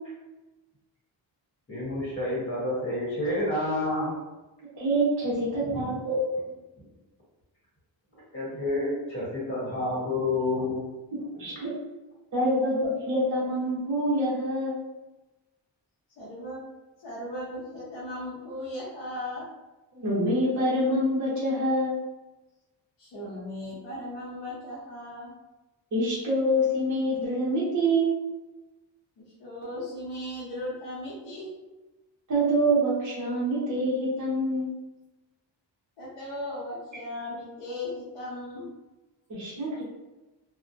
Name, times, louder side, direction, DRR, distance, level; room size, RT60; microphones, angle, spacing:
voice 1, 1.7-4.1 5.6-5.8 8.1-10.8, left 2 dB, 30° left, -7 dB, 1.1 m, -29 dB
voice 2, 4.8-6.2 11.4-11.7 12.3-14.8 19.9-22.0 25.9-28.1 32.3-34.7 39.3-39.8, right 1 dB, 40° right, -8 dB, 0.8 m, -26 dB
voice 3, 16.2-16.6 17.0-19.5 23.0-25.3 29.2-31.5 36.0-38.7 39.7-39.8, left 1 dB, 80° left, -8 dB, 0.8 m, -37 dB
2.6 x 2.1 x 2.5 m, 1.1 s
wide cardioid pair, 105°, 45 cm